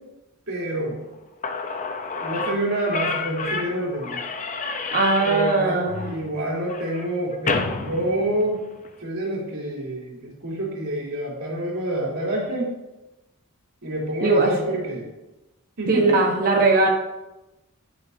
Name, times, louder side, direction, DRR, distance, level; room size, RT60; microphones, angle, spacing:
voice 1, 0.5-1.1 2.2-4.2 5.2-8.7 9.0-12.7 13.8-15.1 15.8-16.1, right 1 dB, 75° right, -4 dB, 3.5 m, -27 dB
Slam / Squeak, 1.1-1.2 1.4-8.9, left 4 dB, 35° left, 0.8 m, -30 dB
voice 2, 4.9-6.1 14.2-14.5 15.9-16.9, right 3 dB, 40° right, 0 dB, 1.2 m, -19 dB
11.0 x 9.8 x 2.8 m, 1.0 s
head